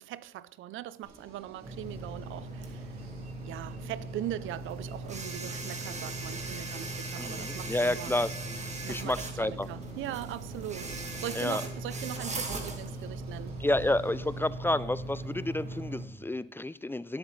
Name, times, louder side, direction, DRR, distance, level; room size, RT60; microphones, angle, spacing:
voice 1, 0.0-3.0 3.5-8.1 8.8-13.6, right 13 dB, 80° right, 0.5 m, -40 dB
sound 1, 1.0-14.5, right 2 dB, 50° right, 3.2 m, -53 dB
sound 2, 1.6-16.1, right 2 dB, 35° right, 1.8 m, -38 dB
voice 2, 7.2-9.7 11.3-11.6 13.6-17.2, left 1 dB, 10° left, 0.3 m, -30 dB
17.5 x 8.0 x 3.2 m
cardioid pair, 90°, 20 cm